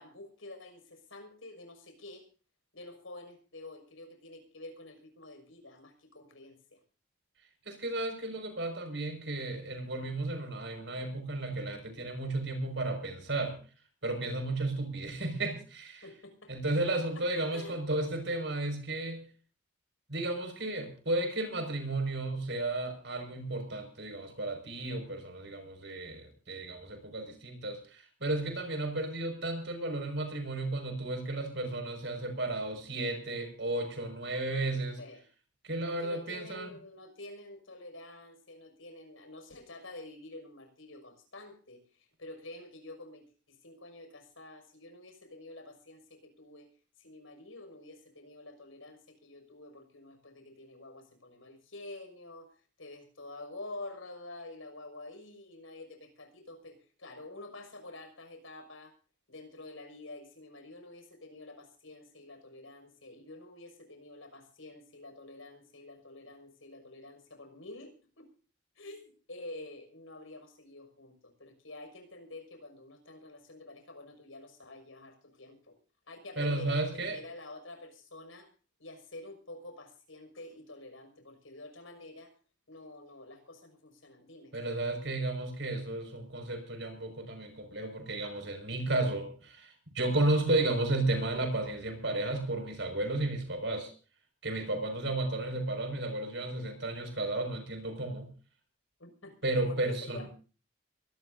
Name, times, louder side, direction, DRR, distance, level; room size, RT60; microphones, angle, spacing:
voice 1, 0.0-2.3 2.7-6.8 16.0-16.5 16.9-17.2 17.5-17.8 35.0-35.2 35.9-46.7 47.0-52.5 52.8-58.9 59.3-68.3 68.8-75.8 76.1-78.5 78.8-82.3 82.7-84.5 99.0-99.4 99.7-100.3, left 2 dB, 85° left, 6 dB, 6.3 m, -48 dB
voice 2, 7.7-13.6 14.0-16.0 16.5-19.2 20.1-35.0 35.6-36.7 76.4-77.2 84.5-93.9 94.4-98.3 99.4-100.3, right 2 dB, 60° right, 6 dB, 5.8 m, -33 dB
23.5 x 18.5 x 2.7 m, 0.37 s
head